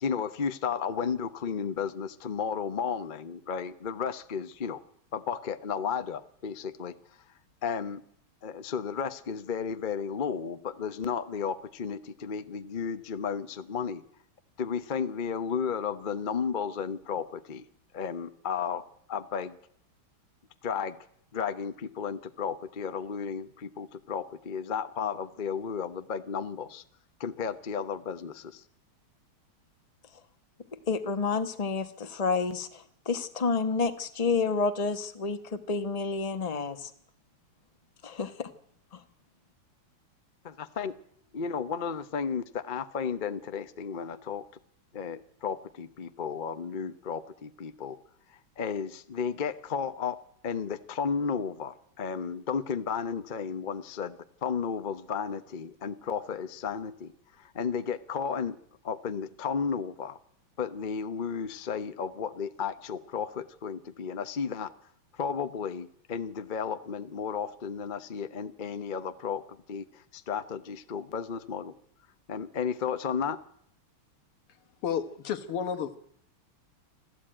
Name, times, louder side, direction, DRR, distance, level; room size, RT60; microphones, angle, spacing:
voice 1, 0.0-4.8 5.1-6.9 7.6-8.0 8.4-14.0 14.6-17.6 17.9-18.8 19.1-19.5 20.6-21.0 21.3-26.8 27.2-28.6 40.4-40.9 41.3-44.4 44.9-48.0 48.6-50.2 50.4-57.1 57.4-58.6 58.8-60.2 60.6-64.7 65.1-71.7 72.3-73.4, left 6 dB, 45° left, 11 dB, 0.6 m, -33 dB
voice 2, 30.9-36.9 38.0-38.5 38.9-39.0, left 4 dB, 20° left, 8 dB, 1.1 m, -29 dB
voice 3, 74.8-76.0, left 8 dB, 90° left, 9 dB, 2.3 m, -31 dB
26.0 x 15.0 x 9.0 m, 0.69 s
omnidirectional pair, 2.4 m